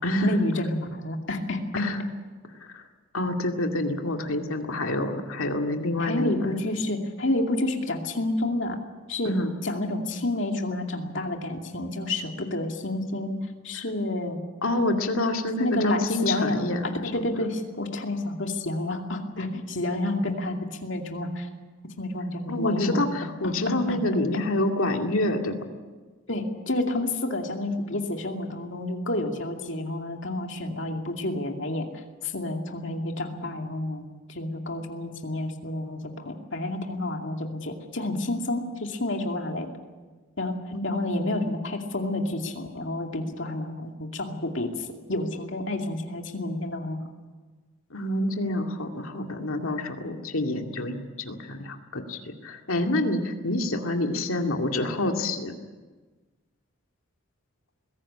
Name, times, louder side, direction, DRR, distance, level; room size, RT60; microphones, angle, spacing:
voice 1, 0.2-1.6 6.0-8.8 9.1-14.4 15.6-21.5 22.0-23.0 23.4-24.0 26.3-31.9 32.2-34.0 34.3-39.7 40.4-40.6 40.8-47.0, left 1 dB, 55° left, 3 dB, 2.5 m, -29 dB
voice 2, 1.7-2.0 2.6-2.8 3.1-6.5 9.2-9.5 14.6-16.8 17.1-17.2 22.5-25.6 40.7-40.9 47.9-55.5, left 1 dB, 75° left, 3 dB, 2.3 m, -27 dB
22.0 x 16.5 x 8.7 m, 1.3 s
head